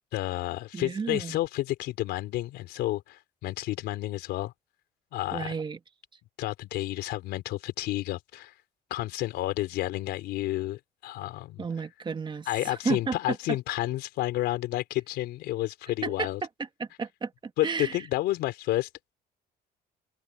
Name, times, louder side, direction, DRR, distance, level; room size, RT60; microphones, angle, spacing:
voice 1, 0.1-4.5 5.1-5.6 6.4-8.5 8.9-11.7 12.5-16.4 17.6-18.9, left 16 dB, 85° left, 4.0 m, -30 dB
voice 2, 0.7-1.4 5.3-5.8 11.6-13.2 16.0-16.3 16.8-18.0, right 5 dB, 30° right, 1.4 m, -32 dB
cardioid pair, 110°, 17 cm